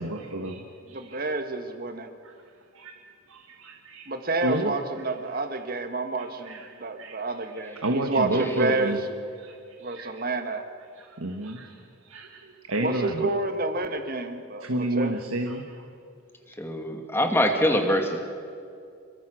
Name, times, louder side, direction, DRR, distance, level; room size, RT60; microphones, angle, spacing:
voice 1, 0.0-1.2 2.2-2.3 2.7-3.0 3.3-4.1 4.4-4.8 5.2-5.4 6.2-6.7 7.0-7.2 7.4-7.5 7.8-9.0 9.4-10.2 10.9-13.3 14.6-15.8, right 1 dB, 75° right, 3 dB, 1.7 m, -31 dB
voice 2, 0.9-2.1 4.1-8.9 9.8-10.6 12.8-15.1 17.5-17.8, right 2 dB, 45° right, 7 dB, 1.6 m, -29 dB
voice 3, 16.6-18.2, left 1 dB, 10° left, 4 dB, 2.0 m, -24 dB
27.5 x 22.5 x 6.4 m, 2.4 s
head